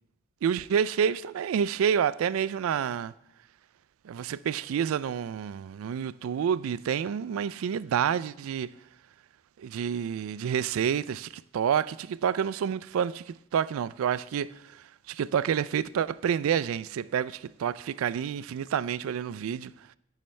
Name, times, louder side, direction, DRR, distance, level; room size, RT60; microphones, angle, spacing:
voice 1, 0.4-3.1 4.0-8.7 9.6-19.7, right 8 dB, 85° right, 0.3 m, -28 dB
14.0 x 5.7 x 3.2 m
head